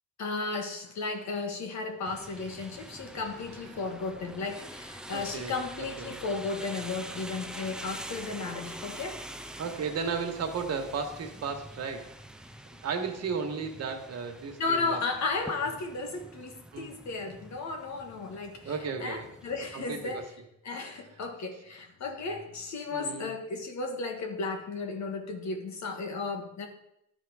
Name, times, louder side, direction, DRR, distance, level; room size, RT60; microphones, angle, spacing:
voice 1, 0.2-9.2 14.6-18.7 19.0-20.2 20.6-26.7, left 3 dB, 65° left, 4 dB, 1.6 m, -34 dB
sound 1, 2.0-20.3, right 1 dB, 5° right, 0.6 m, -46 dB
voice 2, 5.1-6.1 9.6-12.1 12.8-15.0 16.7-16.9 18.6-19.2 19.7-20.3 22.9-23.3, right 5 dB, 55° right, 4 dB, 1.4 m, -34 dB
11.5 x 4.4 x 4.8 m, 0.80 s
cardioid pair, 90°, 30 cm